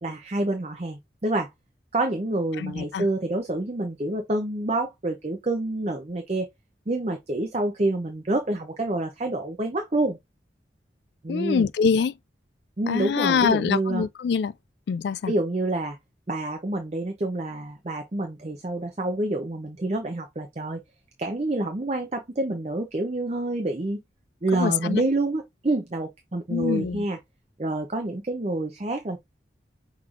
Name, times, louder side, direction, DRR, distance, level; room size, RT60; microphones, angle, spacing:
voice 1, 0.0-1.5 1.9-6.5 6.9-10.2 11.2-11.7 12.8-14.0 15.3-16.0 16.3-20.8 21.2-24.0 24.4-27.2 27.6-29.2, right 2 dB, 35° right, 0.6 m, -27 dB
voice 2, 2.6-3.1 11.3-12.1 12.9-14.5 14.9-15.3 24.5-25.1 26.5-27.0, left 6 dB, 70° left, 0.3 m, -24 dB
5.9 x 3.1 x 2.5 m
head